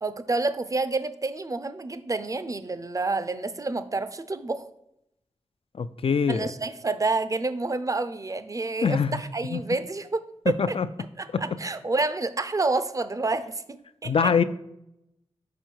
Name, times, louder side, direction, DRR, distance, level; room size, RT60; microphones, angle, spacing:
voice 1, 0.0-4.7 6.3-10.8 11.2-14.3, right 3 dB, 30° right, 12 dB, 0.5 m, -29 dB
voice 2, 5.8-6.5 8.8-9.2 9.5-9.6 10.5-10.9 11.3-11.4 14.0-14.4, left 6 dB, 55° left, 12 dB, 0.4 m, -23 dB
6.2 x 4.6 x 4.5 m, 0.81 s
cardioid pair, 50°, 11 cm